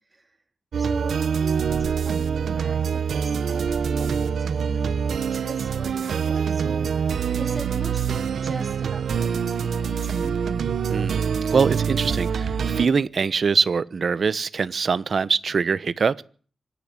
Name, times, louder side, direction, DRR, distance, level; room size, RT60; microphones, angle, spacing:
sound 1, 0.7-12.9, right 6 dB, 75° right, 1.1 m, -25 dB
voice 1, 0.8-1.2 1.7-6.9 7.4-10.4, right 2 dB, 20° right, 5 dB, 3.8 m, -40 dB
voice 2, 10.9-16.2, right 5 dB, 50° right, 16 dB, 1.0 m, -23 dB
25.0 x 10.5 x 9.7 m, 0.42 s
wide cardioid pair, 145°, 0 cm